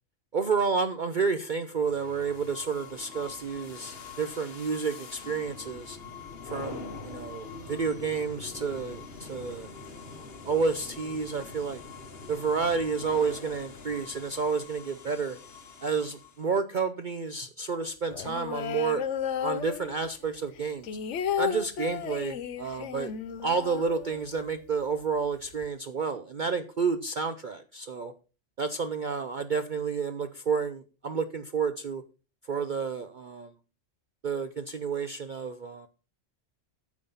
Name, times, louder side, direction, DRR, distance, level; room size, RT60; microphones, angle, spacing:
voice 1, 0.3-6.0 6.4-9.7 10.1-11.8 12.3-15.4 15.8-19.0 19.4-20.9 21.4-23.1 23.4-28.1 28.6-32.0 32.5-33.5 34.2-35.9, right 5 dB, 45° right, 9 dB, 0.7 m, -30 dB
sound 1, 1.8-16.5, left 4 dB, 50° left, 1.4 m, -44 dB
sound 2, 18.1-20.2 20.6-24.5 24.8-24.9 25.2-25.7, left 8 dB, 70° left, 1.0 m, -33 dB
9.3 x 7.3 x 5.5 m, 0.35 s
omnidirectional pair, 1.3 m